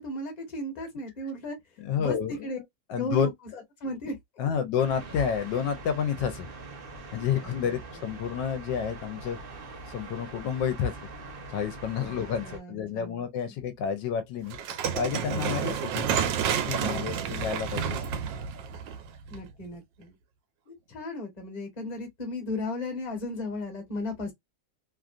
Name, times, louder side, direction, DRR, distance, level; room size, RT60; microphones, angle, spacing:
voice 1, 0.0-1.6 2.0-2.6 2.9-4.2 7.3-7.8 12.0-13.5 15.3-15.7 16.8-17.5 19.3-20.1 20.7-24.3, left 1 dB, 25° left, 1.1 m, -36 dB
voice 2, 1.8-2.3 2.9-3.3 4.4-6.5 7.1-9.4 9.9-10.9 11.5-14.6 15.0-16.1 16.7-18.0, left 8 dB, 80° left, 1.3 m, -29 dB
sound 1, 4.8-12.6, right 3 dB, 45° right, 0.8 m, -43 dB
sound 2, 14.5-19.6, right 8 dB, 85° right, 1.4 m, -30 dB
3.2 x 2.4 x 2.4 m
omnidirectional pair, 1.9 m